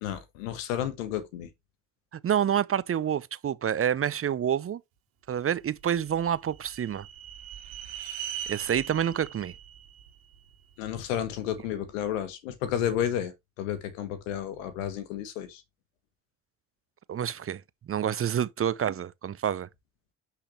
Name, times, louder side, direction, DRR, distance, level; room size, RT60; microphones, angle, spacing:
voice 1, 0.0-1.5 10.8-15.6, left 10 dB, 75° left, 1.6 m, -32 dB
voice 2, 2.1-4.8 5.3-7.1 8.5-9.5 17.1-17.6 17.9-19.7, right 9 dB, 35° right, 0.7 m, -28 dB
sound 1, 5.8-11.0, right 9 dB, 70° right, 1.9 m, -41 dB
9.9 x 5.8 x 3.2 m
figure-of-eight pair, 45°, 39 cm